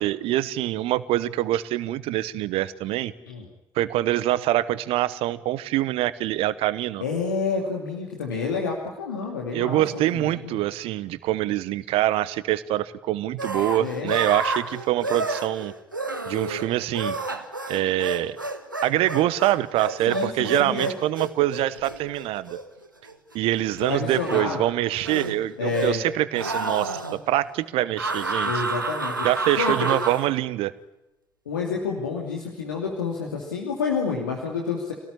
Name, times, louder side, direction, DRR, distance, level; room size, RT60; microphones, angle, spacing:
voice 1, 0.0-3.1 3.7-7.0 9.5-15.7 16.3-17.2 17.7-18.4 18.8-22.6 23.3-28.5 29.2-30.7, right 14 dB, 65° right, 17 dB, 1.1 m, -25 dB
voice 2, 7.0-9.8 10.1-10.6 13.8-14.1 20.1-20.9 23.9-24.6 25.6-26.0 28.4-29.3 29.6-29.9 31.5-34.9, left 5 dB, 80° left, -1 dB, 2.7 m, -29 dB
sound 1, 13.4-23.3 23.8-24.5 25.0-26.1 26.3-27.2 28.0-30.3, right 2 dB, 90° right, 1.3 m, -30 dB
27.5 x 18.0 x 9.8 m, 0.98 s
figure-of-eight pair, 40°, 10 cm